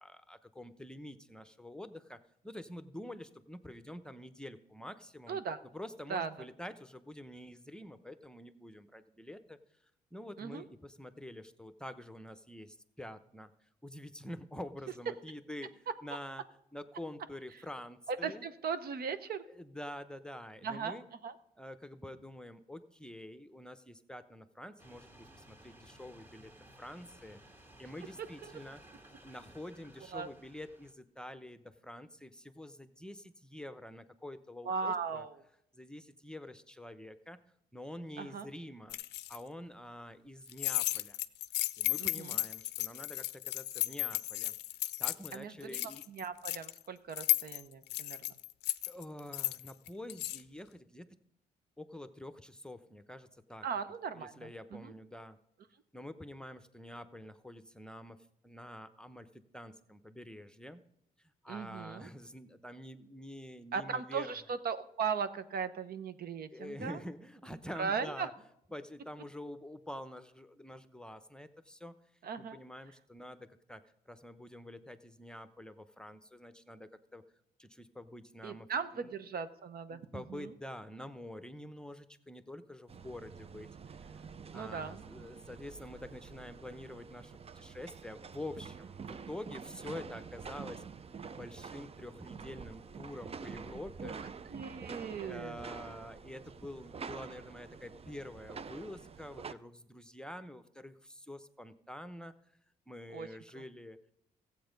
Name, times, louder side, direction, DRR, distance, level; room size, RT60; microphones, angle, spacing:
voice 1, 0.3-2.2 2.5-5.4 5.7-9.4 10.1-10.7 11.0-12.7 13.0-13.5 13.8-15.7 16.0-16.4 16.7-18.4 19.6-21.0 21.6-23.8 24.1-25.0 26.0-26.5 26.8-27.4 27.8-28.8 29.2-30.9 31.2-31.6 31.9-32.3 32.6-32.7 33.0-33.1 33.5-35.2 35.8-37.4 37.7-38.9 39.3-40.8 41.8-43.2 43.5-44.5 45.0-46.0 48.9-50.7 50.9-51.0 51.8-52.3 52.6-53.2 53.5-53.6 54.1-55.3 55.9-58.1 58.5-59.2 59.5-60.8 61.5-64.3 66.5-68.3 68.7-71.5 71.8-71.9 72.5-73.4 73.7-73.8 74.2-75.7 76.0-76.9 77.1-77.2 78.0-78.7 78.9-79.1 79.9-82.0 82.3-82.8 83.0-83.7 84.5-87.2 87.6-88.7 89.3-90.8 91.4-94.2 95.2-100.9 101.3-102.3 102.9-104.0, left 1 dB, 5° left, 11 dB, 0.8 m, -46 dB
voice 2, 5.3-5.6 6.1-6.3 10.4-10.6 18.2-19.4 20.6-21.0 21.2-21.3 28.4-28.6 30.1-30.3 34.6-35.4 38.2-38.5 42.0-42.4 45.3-48.2 53.6-54.9 61.5-62.1 63.7-67.0 67.8-68.3 72.2-72.6 78.4-80.5 84.5-85.0 94.0-95.6 103.1-103.3 103.5-103.6, right 6 dB, 65° right, 12 dB, 0.8 m, -38 dB
sound 1, 24.8-30.9, right 1 dB, 15° right, 2.0 m, -57 dB
sound 2, 38.9-39.4 40.5-45.4 45.6-46.8 47.2-50.4, left 17 dB, 90° left, 0.4 m, -34 dB
sound 3, 82.9-99.5, right 6 dB, 35° right, 0.5 m, -47 dB
14.5 x 8.1 x 5.2 m, 0.77 s
supercardioid pair, 65°, 17 cm